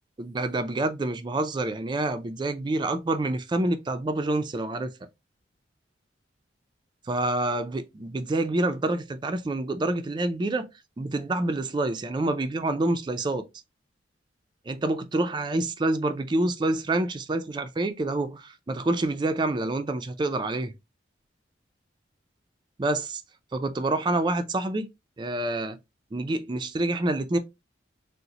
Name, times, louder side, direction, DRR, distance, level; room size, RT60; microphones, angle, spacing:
voice 1, 0.2-4.9 7.1-10.7 11.0-13.4 14.7-20.7 22.8-23.2 23.5-24.9 25.2-25.8 26.1-27.4, right 2 dB, 25° right, 0.3 m, -27 dB
3.7 x 2.0 x 2.8 m
head